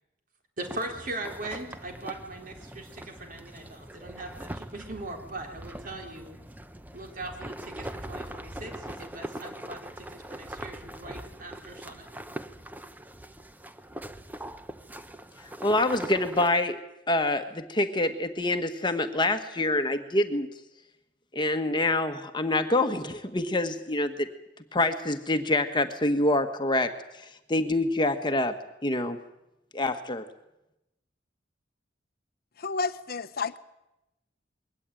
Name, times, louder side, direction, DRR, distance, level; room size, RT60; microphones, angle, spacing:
sound 1, 0.6-16.5, right 1 dB, 10° right, 1.0 m, -42 dB
voice 1, 0.6-6.4 6.9-12.1, right 2 dB, 50° right, 3 dB, 4.0 m, -40 dB
voice 2, 15.6-16.8 17.1-20.5 21.3-24.3 24.7-29.2 29.7-30.3, left 2 dB, 25° left, 7 dB, 1.4 m, -26 dB
voice 3, 32.6-33.6, left 4 dB, 55° left, 13 dB, 0.9 m, -31 dB
22.0 x 17.5 x 9.2 m, 0.90 s
head